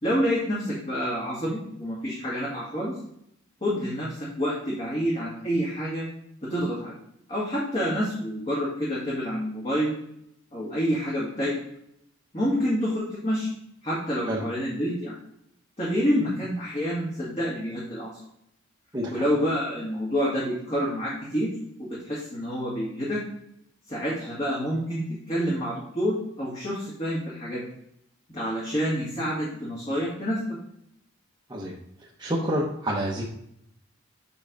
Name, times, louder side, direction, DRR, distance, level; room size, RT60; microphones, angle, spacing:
voice 1, 0.0-2.9 3.6-6.1 6.4-6.9 7.3-9.9 10.5-11.6 12.3-13.5 13.8-15.2 15.8-18.1 19.1-21.5 21.8-23.2 23.9-27.6 28.3-30.4, equal, 30° left, -7 dB, 2.0 m, -28 dB
voice 2, 18.9-19.2 31.5-31.7 32.2-33.2, equal, 20° right, -5 dB, 0.9 m, -28 dB
7.4 x 3.9 x 5.3 m, 0.73 s
head